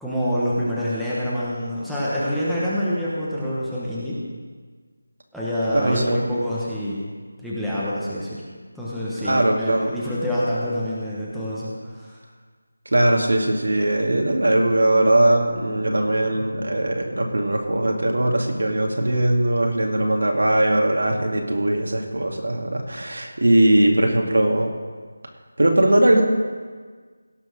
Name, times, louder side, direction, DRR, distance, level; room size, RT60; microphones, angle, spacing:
voice 1, 0.0-4.2 5.3-7.0 7.4-8.4 8.7-12.2 16.3-16.5, equal, ahead, -11 dB, 1.2 m, -26 dB
voice 2, 5.7-6.2 9.2-9.9 12.9-24.7 25.6-26.2, right 1 dB, 85° right, 1 dB, 2.4 m, -20 dB
17.0 x 6.2 x 6.3 m, 1.5 s
figure-of-eight pair, 175°, 0 cm